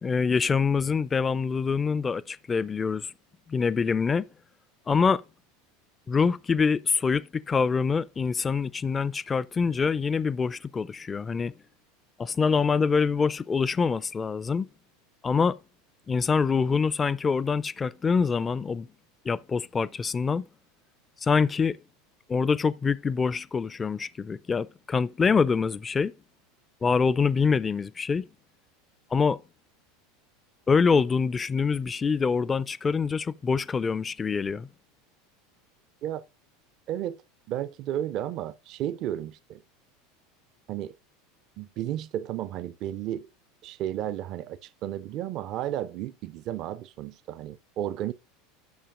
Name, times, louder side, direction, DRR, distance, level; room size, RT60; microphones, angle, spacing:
voice 1, 0.0-3.1 3.5-4.3 4.9-5.2 6.1-11.5 12.2-14.7 15.2-15.6 16.1-18.9 19.3-20.5 21.2-21.8 22.3-26.1 26.8-28.3 29.1-29.4 30.7-34.7, left 5 dB, 20° left, 0.3 m, -25 dB
voice 2, 36.9-37.2 37.5-39.6 40.7-40.9 41.6-43.3 43.6-48.1, right 12 dB, 45° right, 0.4 m, -33 dB
10.5 x 6.7 x 2.4 m
figure-of-eight pair, 80°, 0 cm